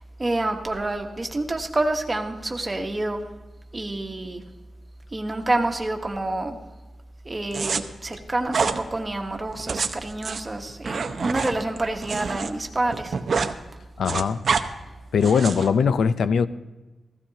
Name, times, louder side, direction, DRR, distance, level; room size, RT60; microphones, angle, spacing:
voice 1, 0.0-3.2 3.7-4.4 5.1-6.6 7.2-13.2, right 2 dB, 20° right, 3 dB, 1.2 m, -28 dB
sound 1, 7.5-7.8 8.5-8.8 9.5-12.5 12.8-13.5 13.8-14.6 15.2-15.7, right 5 dB, 50° right, 0.7 m, -27 dB
voice 2, 14.0-14.4 15.1-16.5, left 6 dB, 80° left, 13 dB, 0.5 m, -20 dB
15.5 x 15.0 x 2.9 m, 1.1 s
wide cardioid pair, 155°, 0 cm